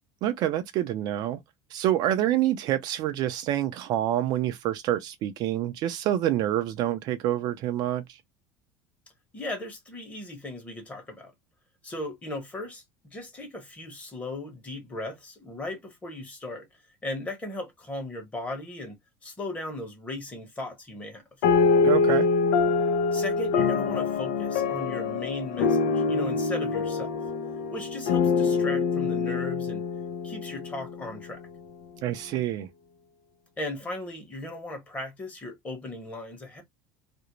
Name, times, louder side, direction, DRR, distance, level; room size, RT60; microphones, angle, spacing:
voice 1, 0.2-1.4 1.7-8.0 21.8-22.3 32.0-32.7, right 12 dB, 50° right, 0.4 m, -27 dB
voice 2, 9.3-11.3 11.8-16.7 17.0-19.0 19.2-21.2 23.1-27.1 27.7-29.8 30.2-31.4 33.6-36.6, left 2 dB, 15° left, 1.0 m, -37 dB
sound 1, 21.4-31.2, left 4 dB, 85° left, 0.6 m, -25 dB
2.4 x 2.0 x 2.9 m
cardioid pair, 140°, 9 cm